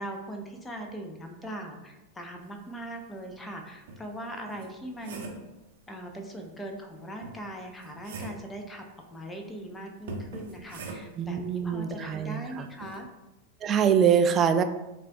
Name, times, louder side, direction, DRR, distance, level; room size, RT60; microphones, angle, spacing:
voice 1, 0.0-5.2 5.9-8.8 9.1-13.1, right 1 dB, 10° left, 3 dB, 0.7 m, -40 dB
sound 1, 3.3-3.4 3.9-5.5 7.2-8.5 10.1-11.3 12.8-13.0, right 2 dB, 55° right, 0.7 m, -41 dB
voice 2, 11.2-12.7 13.6-14.6, right 7 dB, 25° right, 8 dB, 0.3 m, -24 dB
7.4 x 2.5 x 2.3 m, 1.0 s
figure-of-eight pair, 90°, 0 cm